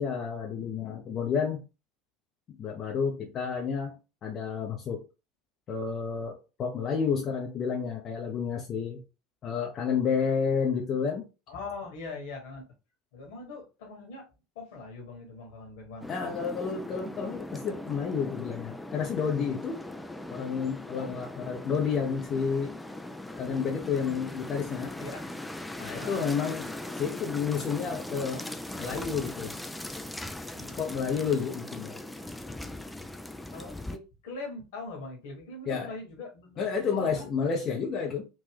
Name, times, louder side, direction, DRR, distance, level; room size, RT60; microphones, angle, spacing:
voice 1, 0.0-1.6 2.5-5.0 5.7-9.0 9.4-11.3 16.1-19.8 20.3-22.8 23.4-25.0 25.8-28.5 28.8-29.5 30.8-31.9 35.7-35.9 36.6-38.3, left 6 dB, 40° left, 0.7 m, -30 dB
voice 2, 11.5-12.7 13.1-14.3 14.5-16.1 20.9-21.1 25.0-25.2 25.8-26.2 30.5-31.3 33.5-37.3, left 3 dB, 70° left, 1.4 m, -42 dB
sound 1, 16.0-34.0, left 1 dB, 5° left, 0.4 m, -40 dB
3.7 x 2.5 x 3.4 m
hypercardioid pair, 75°, 0 cm